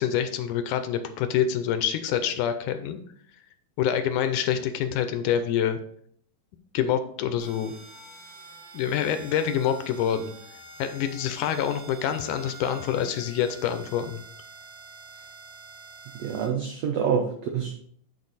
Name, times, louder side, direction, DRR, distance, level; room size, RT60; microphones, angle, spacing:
voice 1, 0.0-3.0 3.8-5.8 6.7-7.7 8.7-10.3 10.8-14.2, left 9 dB, 80° left, 9 dB, 2.0 m, -26 dB
sound 1, 7.4-16.5, right 3 dB, 45° right, 3.4 m, -46 dB
voice 2, 16.1-17.8, right 7 dB, 85° right, 3 dB, 1.4 m, -27 dB
9.7 x 4.4 x 4.0 m, 0.64 s
omnidirectional pair, 3.8 m